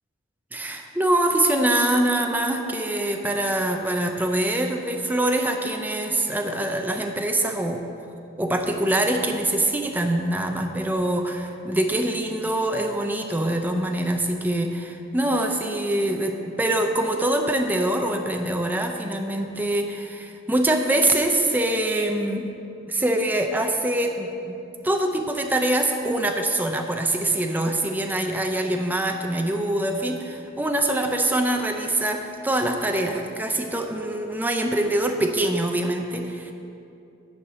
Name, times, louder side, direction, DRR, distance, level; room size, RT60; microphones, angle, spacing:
voice 1, 0.5-7.8 8.4-22.5 22.9-36.5, right 1 dB, 10° right, 3 dB, 0.5 m, -24 dB
10.0 x 4.7 x 6.7 m, 2.7 s
head